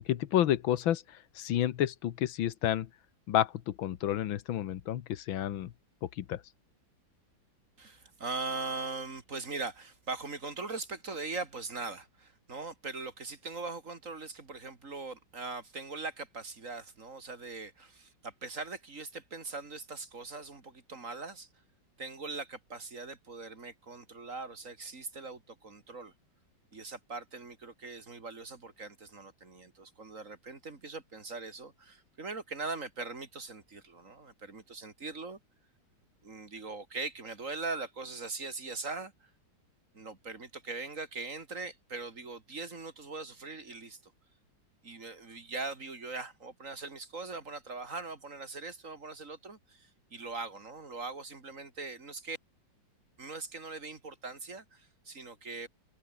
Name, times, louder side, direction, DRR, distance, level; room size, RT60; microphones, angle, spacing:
voice 1, 0.0-2.9 3.3-5.7 6.2-6.4, left 11 dB, 90° left, 1.8 m, -30 dB
voice 2, 7.8-21.5 22.0-26.1 26.7-35.4 36.2-39.3 39.9-44.1 44.8-52.4 53.2-55.7, right 3 dB, 40° right, 3.0 m, -41 dB
omnidirectional pair, 2.1 m